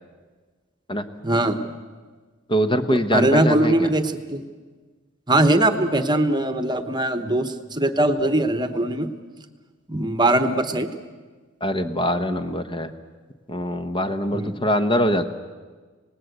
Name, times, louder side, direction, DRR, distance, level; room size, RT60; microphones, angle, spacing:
voice 1, 1.2-1.6 2.9-4.4 5.3-9.1 9.9-10.9 14.3-14.6, right 1 dB, 20° right, 9 dB, 1.1 m, -21 dB
voice 2, 2.5-3.9 11.6-12.9 13.5-15.3, equal, 25° left, 9 dB, 1.0 m, -23 dB
27.0 x 19.0 x 8.0 m, 1.4 s
head